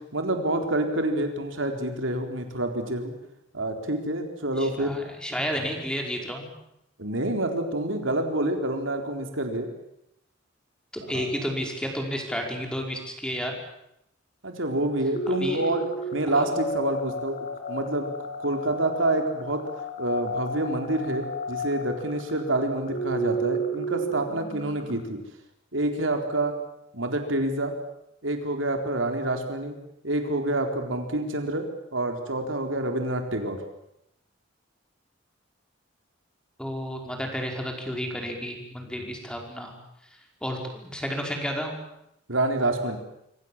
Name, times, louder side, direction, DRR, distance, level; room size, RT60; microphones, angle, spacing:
voice 1, 0.1-3.1 3.5-5.0 7.0-9.7 11.1-11.3 14.4-17.4 17.7-18.1 18.4-19.6 20.0-25.2 25.7-26.5 26.9-27.7 28.2-29.8 30.0-31.7 31.9-33.6 42.3-43.0, right 1 dB, 80° right, 5 dB, 4.1 m, -27 dB
voice 2, 4.6-6.5 10.9-13.5 15.3-15.7 16.3-16.5 36.6-39.7 40.4-41.7, equal, 5° left, 2 dB, 5.1 m, -31 dB
sound 1, 15.1-25.0, right 1 dB, 40° left, 3.6 m, -33 dB
26.5 x 25.5 x 7.5 m, 0.81 s
head